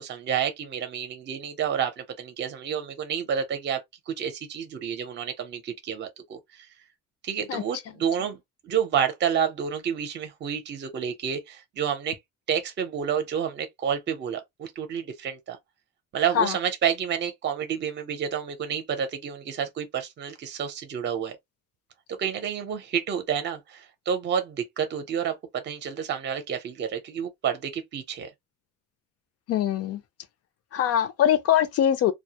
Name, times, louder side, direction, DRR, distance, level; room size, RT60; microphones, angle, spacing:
voice 1, 0.0-6.7 7.2-8.4 8.6-12.2 12.5-15.6 16.1-21.4 22.1-28.3, right 8 dB, 35° right, 0.6 m, -29 dB
voice 2, 29.5-30.0 30.7-32.1, left 10 dB, 55° left, 0.6 m, -22 dB
2.2 x 2.0 x 2.8 m
cardioid pair, 140°, 30 cm